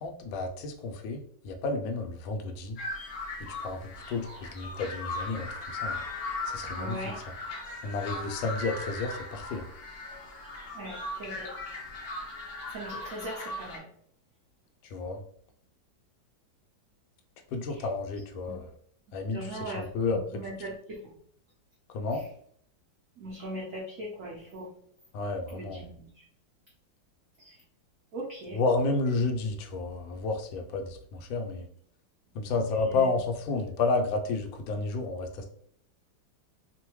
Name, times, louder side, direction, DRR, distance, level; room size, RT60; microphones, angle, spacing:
voice 1, 0.0-2.8 3.6-6.0 6.5-7.0 7.8-9.7 14.8-15.2 17.5-18.7 19.1-20.2 21.9-22.2 25.1-25.8 28.5-31.7 32.3-35.5, left 3 dB, 85° left, 5 dB, 1.3 m, -31 dB
sound 1, 2.8-13.8, left 2 dB, 65° left, 0.7 m, -38 dB
voice 2, 6.7-7.2 10.7-11.5 12.7-13.9 18.5-18.6 19.3-19.9 20.1-21.1 22.1-22.2 23.2-24.7 25.5-26.1 27.4-27.5 28.1-28.6 32.5-32.6 32.9-33.1, right 1 dB, 65° right, -4 dB, 0.8 m, -39 dB
3.2 x 2.1 x 3.0 m, 0.63 s
omnidirectional pair, 2.1 m